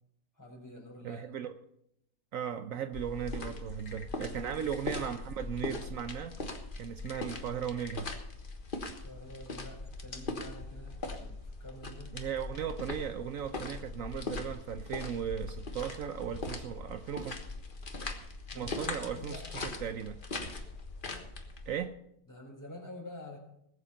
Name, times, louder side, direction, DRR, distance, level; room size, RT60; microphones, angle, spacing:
voice 1, 0.4-1.2 4.4-4.6 8.8-12.1 18.5-19.4 22.3-23.4, left 1 dB, 10° left, -1 dB, 4.2 m, -48 dB
voice 2, 1.0-1.6 2.3-6.4 6.8-8.1 12.1-17.4 18.6-20.2 21.7-21.9, right 8 dB, 70° right, 9 dB, 1.1 m, -37 dB
sound 1, 2.9-21.7, left 2 dB, 35° left, 1.5 m, -40 dB
Frog / Percussion / Wood, 3.6-4.9 6.9-8.1, left 4 dB, 75° left, 1.8 m, -52 dB
19.5 x 8.3 x 5.6 m, 0.77 s
omnidirectional pair, 1.6 m